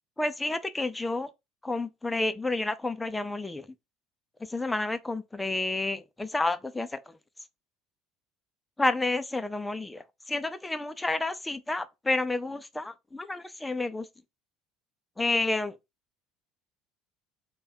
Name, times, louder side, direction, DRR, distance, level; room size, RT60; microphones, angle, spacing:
voice 1, 0.2-1.3 1.6-3.6 4.5-7.0 8.8-14.1 15.2-15.7, left 2 dB, 10° left, 0.4 m, -30 dB
3.3 x 2.2 x 4.1 m
figure-of-eight pair, 60°, 0 cm